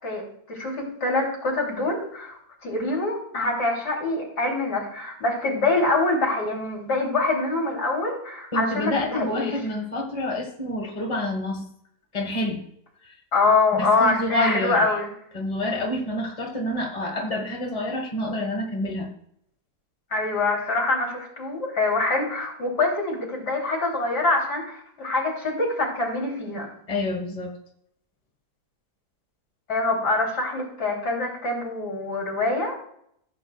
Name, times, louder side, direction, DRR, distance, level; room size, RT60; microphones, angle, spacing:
voice 1, 0.0-9.6 13.3-15.1 20.1-26.7 29.7-32.8, left 2 dB, 85° left, -2 dB, 3.7 m, -25 dB
voice 2, 8.5-11.7 12.1-12.7 13.0-13.1 13.7-14.9 15.3-19.1 26.9-27.6, left 1 dB, 20° left, 2 dB, 1.6 m, -28 dB
16.0 x 8.6 x 2.3 m, 0.70 s
omnidirectional pair, 1.7 m